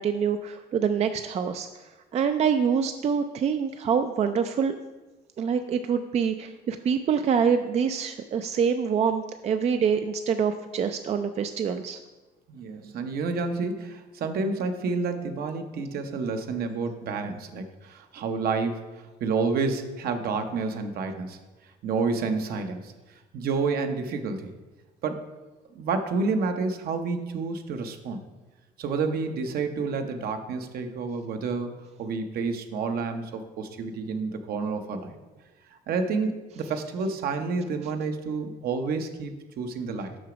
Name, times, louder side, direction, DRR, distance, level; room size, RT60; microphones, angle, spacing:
voice 1, 0.0-1.8 2.1-4.8 5.4-12.0, right 7 dB, 40° right, 8 dB, 0.4 m, -25 dB
voice 2, 12.5-21.4 21.8-22.9 23.3-24.5 25.0-25.2 25.7-28.2 28.8-31.7 32.0-35.2 35.7-40.2, right 4 dB, 65° right, 7 dB, 0.8 m, -29 dB
6.3 x 6.0 x 5.0 m, 1.2 s
cardioid pair, 110°, 17 cm